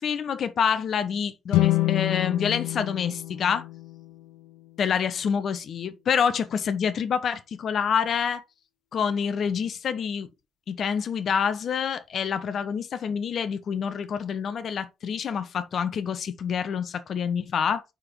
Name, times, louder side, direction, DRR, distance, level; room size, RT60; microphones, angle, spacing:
voice 1, 0.0-3.7 4.8-8.4 8.9-10.3 10.7-17.8, left 7 dB, 60° left, 1.0 m, -27 dB
sound 1, 1.5-4.8, left 16 dB, 80° left, 0.7 m, -27 dB
5.7 x 4.9 x 4.5 m
hypercardioid pair, 50°, 0 cm